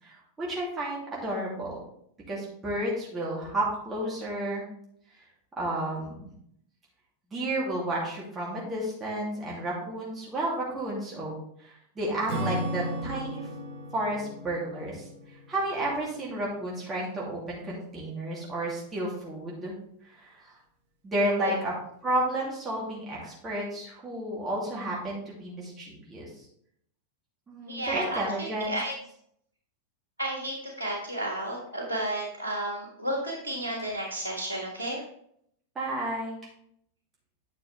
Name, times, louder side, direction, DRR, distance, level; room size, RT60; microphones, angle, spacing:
voice 1, 0.0-1.8 2.3-4.6 5.6-6.3 7.3-13.5 13.9-15.1 15.5-19.7 20.1-20.5 21.0-21.7 22.0-26.3 27.5-28.8 33.8-33.9 35.7-36.4, right 1 dB, 20° right, -6 dB, 2.9 m, -32 dB
Acoustic guitar / Strum, 12.3-17.1, right 1 dB, 55° right, 1.4 m, -36 dB
voice 2, 27.7-28.9 30.2-35.0, right 1 dB, 80° left, -1 dB, 1.7 m, -32 dB
9.6 x 6.4 x 3.4 m, 0.69 s
figure-of-eight pair, 90°, 0 cm